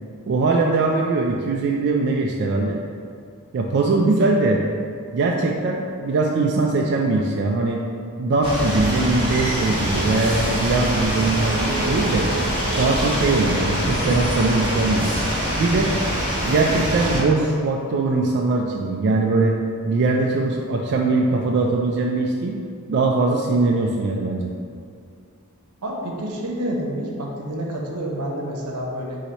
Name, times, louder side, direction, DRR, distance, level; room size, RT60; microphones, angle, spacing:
voice 1, 0.3-2.8 3.5-4.6 5.1-7.8 8.2-12.3 12.8-15.2 15.6-15.9 16.4-19.6 19.8-22.6 22.9-24.5, right 3 dB, 50° right, 0 dB, 0.3 m, -21 dB
sound 1, 8.4-17.2, equal, 25° right, 1.2 m, -24 dB
voice 2, 25.8-29.2, equal, 85° right, -1 dB, 0.8 m, -28 dB
4.4 x 2.8 x 4.0 m, 2.3 s
head